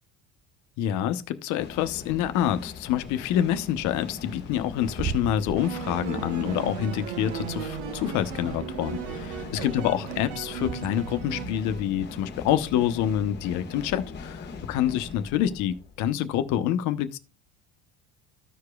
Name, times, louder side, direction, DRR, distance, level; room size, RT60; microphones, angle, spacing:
voice 1, 0.8-9.3 9.6-17.2, left 11 dB, 70° left, 0.9 m, -27 dB
sound 1, 1.6-16.4, left 4 dB, 35° left, 1.4 m, -41 dB
Bird / Wind, 2.6-11.3, right 7 dB, 15° right, 0.4 m, -41 dB
sound 2, 5.6-12.2, right 9 dB, 70° right, 0.9 m, -36 dB
14.5 x 4.9 x 2.3 m
cardioid pair, 115°, 30 cm